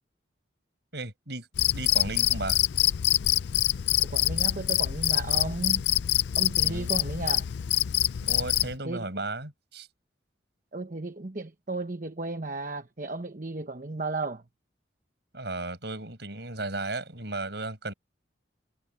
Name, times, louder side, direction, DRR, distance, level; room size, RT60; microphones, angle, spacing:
voice 1, 0.9-1.5 1.7-2.6 6.6-6.9 8.2-9.9 15.3-17.9, right 2 dB, 60° right, 6.1 m, -35 dB
Cricket, 1.6-8.7, left 14 dB, 65° left, 0.4 m, -25 dB
voice 2, 4.0-5.8 6.4-7.5 8.8-9.0 10.7-14.4, right 3 dB, 45° right, 1.1 m, -34 dB
head